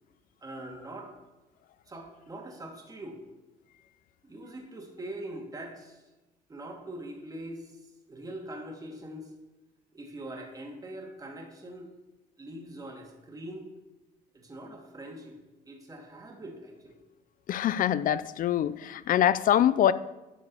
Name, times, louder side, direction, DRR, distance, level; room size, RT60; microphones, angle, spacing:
voice 1, 0.4-1.1 1.9-3.2 4.2-6.0 6.5-7.8 8.1-9.3 9.9-11.9 12.4-13.7 14.3-15.4 15.7-17.0, right 1 dB, 20° right, 1 dB, 2.3 m, -42 dB
voice 2, 17.5-19.9, left 11 dB, 55° left, 16 dB, 0.5 m, -24 dB
11.0 x 5.3 x 6.9 m, 1.1 s
cardioid pair, 110°, 17 cm